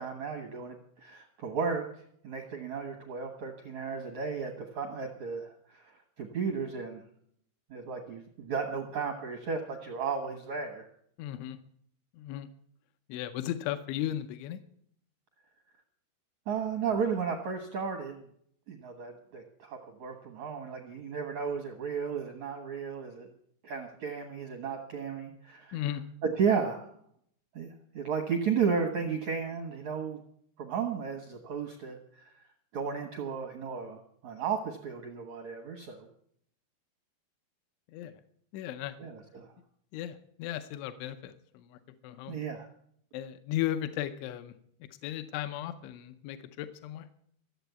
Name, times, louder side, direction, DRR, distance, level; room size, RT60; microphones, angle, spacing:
voice 1, 0.0-1.9 2.2-5.9 6.2-7.0 7.7-10.9 16.5-18.2 18.7-23.3 23.6-25.8 26.2-26.9 27.6-30.2 30.6-32.3 32.7-36.1 39.0-39.5 42.3-42.7, right 6 dB, 75° right, 3 dB, 1.6 m, -34 dB
voice 2, 11.2-11.6 12.1-12.5 13.1-14.6 25.7-26.0 37.9-38.2 38.5-39.0 39.9-42.4 43.1-44.6 45.0-47.1, left 12 dB, 85° left, 9 dB, 3.1 m, -36 dB
14.5 x 7.8 x 8.1 m, 0.67 s
omnidirectional pair, 5.3 m